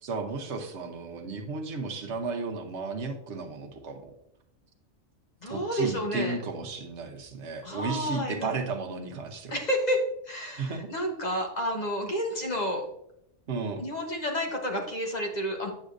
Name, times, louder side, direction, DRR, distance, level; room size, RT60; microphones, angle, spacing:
voice 1, 0.0-4.1 5.5-9.6 10.6-10.9 13.5-13.8, right 4 dB, 60° right, 5 dB, 1.1 m, -34 dB
voice 2, 5.4-6.4 7.6-8.6 9.5-10.0 10.3-12.8 13.8-15.7, equal, 35° left, 2 dB, 1.1 m, -30 dB
8.6 x 6.4 x 2.5 m, 0.76 s
omnidirectional pair, 1.3 m